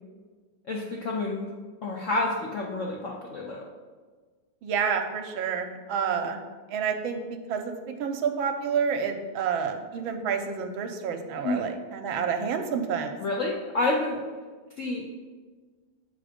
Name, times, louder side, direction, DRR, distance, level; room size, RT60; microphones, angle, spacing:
voice 1, 0.7-1.5 1.8-3.6 11.4-11.7 13.2-14.2 14.8-15.0, left 2 dB, 75° left, -1 dB, 0.7 m, -29 dB
voice 2, 4.6-6.4 6.7-13.2, right 6 dB, 85° right, 5 dB, 1.4 m, -29 dB
7.6 x 3.8 x 5.0 m, 1.4 s
omnidirectional pair, 2.2 m